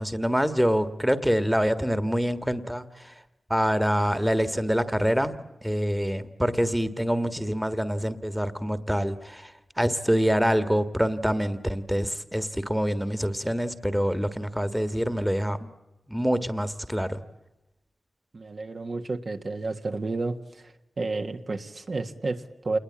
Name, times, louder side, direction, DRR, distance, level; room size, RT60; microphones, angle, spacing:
voice 1, 0.0-3.1 3.5-5.4 5.6-9.5 9.8-15.7 16.1-17.2, equal, 5° right, 11 dB, 1.6 m, -25 dB
voice 2, 18.3-20.7 21.0-22.8, right 3 dB, 55° right, 5 dB, 1.6 m, -31 dB
28.5 x 21.0 x 8.7 m, 1.0 s
wide cardioid pair, 80°, 0 cm